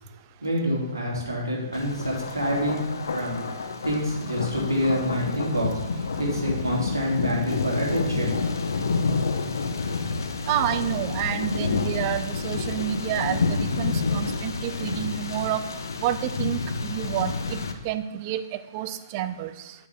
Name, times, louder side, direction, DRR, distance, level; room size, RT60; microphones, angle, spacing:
voice 1, 0.4-8.4, equal, 90° right, -4 dB, 2.7 m, -27 dB
Thunder, 1.7-17.7, left 4 dB, 70° left, 0.7 m, -29 dB
voice 2, 10.5-15.6 16.0-17.6 17.8-19.7, right 11 dB, 35° right, 11 dB, 0.5 m, -29 dB
8.5 x 4.8 x 3.5 m, 0.90 s
figure-of-eight pair, 125°, 2 cm